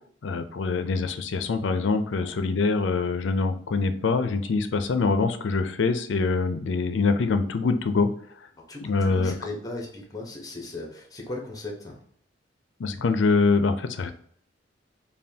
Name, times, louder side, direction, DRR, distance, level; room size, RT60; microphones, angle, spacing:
voice 1, 0.2-8.1 8.8-9.3 12.8-14.1, left 4 dB, 70° left, 9 dB, 0.5 m, -24 dB
voice 2, 8.7-12.0, left 2 dB, 20° left, -1 dB, 0.9 m, -37 dB
5.4 x 2.3 x 2.7 m, 0.62 s
head